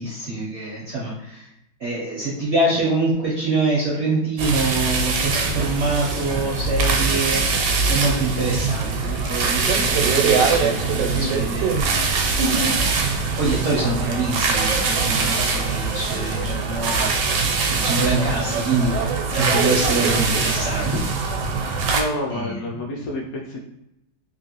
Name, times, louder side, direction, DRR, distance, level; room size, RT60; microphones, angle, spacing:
voice 1, 0.0-1.5 1.8-7.4 7.9-12.0 12.5-18.9 19.3-21.0 22.3-22.6, right 2 dB, 65° right, -5 dB, 0.7 m, -25 dB
sound 1, 4.4-22.0, right 4 dB, 80° right, 1.2 m, -22 dB
voice 2, 21.9-23.6, left 1 dB, 70° left, -1 dB, 0.9 m, -28 dB
3.0 x 2.6 x 2.9 m, 0.85 s
omnidirectional pair, 1.9 m